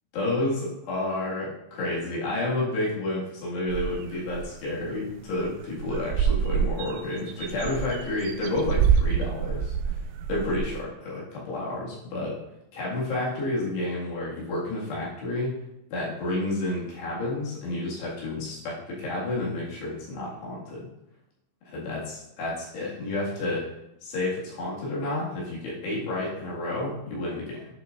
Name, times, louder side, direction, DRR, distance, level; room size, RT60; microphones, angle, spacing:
voice 1, 0.1-10.0 10.3-12.4 12.7-15.5 15.9-20.9 21.7-23.7 24.0-27.7, left 2 dB, 65° left, -6 dB, 4.0 m, -30 dB
sound 1, 3.7-4.5 4.9-5.0 5.2-5.5 5.8-10.8, right 7 dB, 85° right, 2.9 m, -27 dB
11.0 x 6.3 x 2.6 m, 0.84 s
omnidirectional pair, 5.6 m